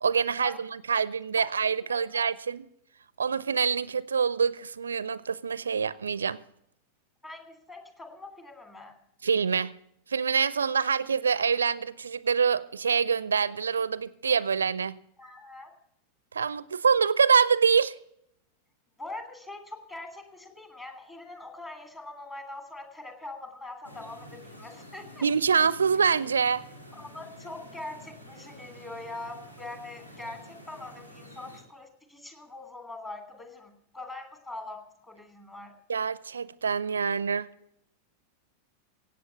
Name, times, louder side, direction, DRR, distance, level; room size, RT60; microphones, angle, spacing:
voice 1, 0.0-2.7 3.2-6.4 9.2-9.7 10.1-15.0 16.3-17.9 25.2-26.6 35.9-37.5, right 6 dB, 70° right, 0.4 m, -25 dB
voice 2, 1.9-2.3 7.2-9.0 15.2-15.7 19.0-25.3 26.9-35.7, left 2 dB, 15° left, 3.0 m, -43 dB
sound 1, 23.8-31.6, equal, 80° left, 2.5 m, -49 dB
17.0 x 8.5 x 6.9 m
figure-of-eight pair, 90°, 0 cm